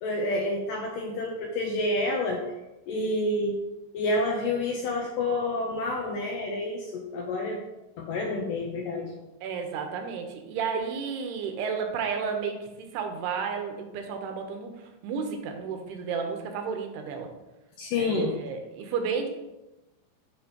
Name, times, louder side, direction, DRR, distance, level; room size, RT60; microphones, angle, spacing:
voice 1, 0.0-2.4 2.9-3.6 3.9-7.6 8.0-9.1 17.8-18.3, left 2 dB, 75° left, 0 dB, 2.0 m, -28 dB
voice 2, 9.4-17.3 18.0-19.3, right 6 dB, 85° right, 4 dB, 2.9 m, -32 dB
9.9 x 5.2 x 2.9 m, 1.0 s
omnidirectional pair, 4.6 m